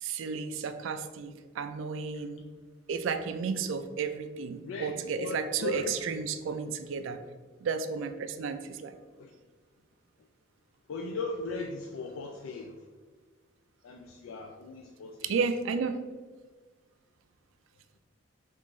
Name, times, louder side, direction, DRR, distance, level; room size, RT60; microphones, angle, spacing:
voice 1, 0.0-2.5 2.9-7.2 7.6-9.0 15.2-16.0, right 5 dB, 75° right, 9 dB, 0.3 m, -33 dB
voice 2, 4.7-6.0 9.2-9.3 10.9-12.8 13.8-15.3, left 4 dB, 80° left, 2 dB, 0.3 m, -38 dB
5.3 x 2.5 x 3.1 m, 1.4 s
head